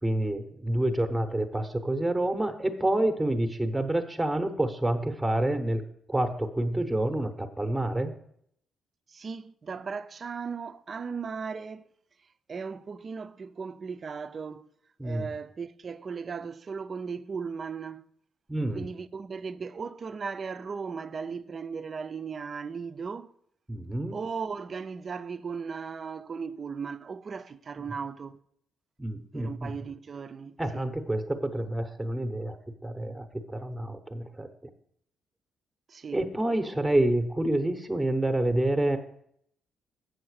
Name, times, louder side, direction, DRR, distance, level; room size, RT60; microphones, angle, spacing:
voice 1, 0.0-5.8 6.1-8.1 15.0-15.3 18.5-18.9 23.7-24.2 29.0-29.7 30.6-32.6 32.8-34.5 36.1-39.0, right 1 dB, 10° right, 0.8 m, -28 dB
voice 2, 9.1-11.9 12.5-14.7 15.0-18.0 18.7-23.3 24.1-28.4 29.3-30.9 35.9-36.2, right 5 dB, 40° right, 0.4 m, -37 dB
7.6 x 6.5 x 4.7 m
cardioid pair, 90°, 0 cm